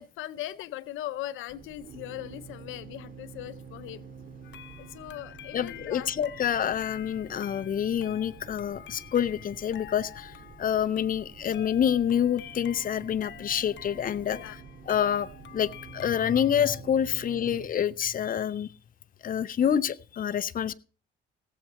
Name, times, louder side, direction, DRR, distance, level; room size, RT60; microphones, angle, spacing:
voice 1, 0.0-4.0 4.8-6.1 14.3-14.6, left 14 dB, 85° left, 15 dB, 0.6 m, -39 dB
sound 1, 1.5-17.7, right 5 dB, 50° right, 2.0 m, -48 dB
sound 2, 4.4-16.8, left 11 dB, 65° left, 0.9 m, -48 dB
voice 2, 5.5-14.5 14.9-18.7 19.2-20.7, left 9 dB, 45° left, 14 dB, 0.6 m, -27 dB
17.5 x 7.6 x 4.2 m, 0.38 s
cardioid pair, 90°, 20 cm